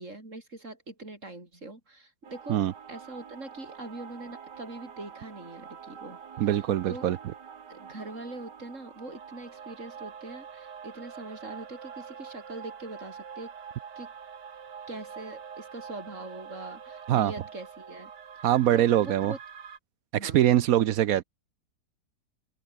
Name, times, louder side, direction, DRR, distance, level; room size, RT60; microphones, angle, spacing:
voice 1, 0.0-2.6 2.9-6.2 6.9-7.1 7.7-13.5 14.0-14.1 14.9-18.1 18.4-19.4 20.1-20.9, right 2 dB, 45° right, 6.0 m, -42 dB
sound 1, 2.2-19.8, right 7 dB, 85° right, 2.4 m, -45 dB
voice 2, 6.4-7.2 17.1-17.3 18.4-19.3 20.2-21.2, right 12 dB, 65° right, 1.0 m, -23 dB
open air
omnidirectional pair, 1.8 m